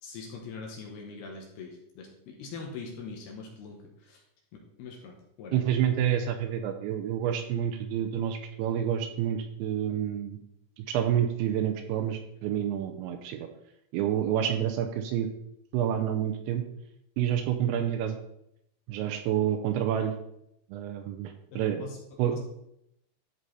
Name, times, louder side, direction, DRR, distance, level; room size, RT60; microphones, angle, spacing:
voice 1, 0.0-4.2 4.5-5.7 21.5-22.0 22.3-22.4, left 4 dB, 70° left, 0 dB, 2.8 m, -42 dB
voice 2, 5.5-10.4 10.8-13.5 13.9-15.3 15.7-16.6 17.2-18.2 18.9-20.1 20.7-21.8 22.2-22.4, right 10 dB, 80° right, 6 dB, 2.8 m, -28 dB
13.0 x 4.9 x 4.2 m, 0.78 s
omnidirectional pair, 5.6 m